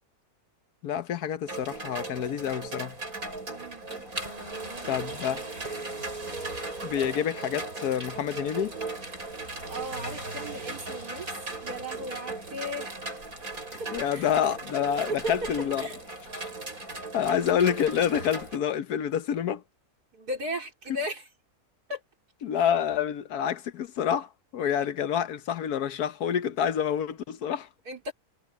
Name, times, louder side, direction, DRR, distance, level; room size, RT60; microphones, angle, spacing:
voice 1, 0.8-3.0 4.9-5.4 6.8-8.7 13.9-15.9 17.1-19.6 22.4-27.7, left 8 dB, 80° left, 1.4 m, -28 dB
sound 1, 1.5-18.6, right 2 dB, 65° right, 7.8 m, -37 dB
voice 2, 3.5-4.1 4.5-5.7 9.7-11.3 11.6-13.2 13.8-14.3 14.9-15.5 15.8-16.0 20.1-21.3 21.9-22.0 22.6-22.7 27.9-28.1, equal, 85° right, 4.5 m, -37 dB
sound 2, 4.3-10.8, right 2 dB, 25° right, 6.6 m, -45 dB
omnidirectional pair, 1.6 m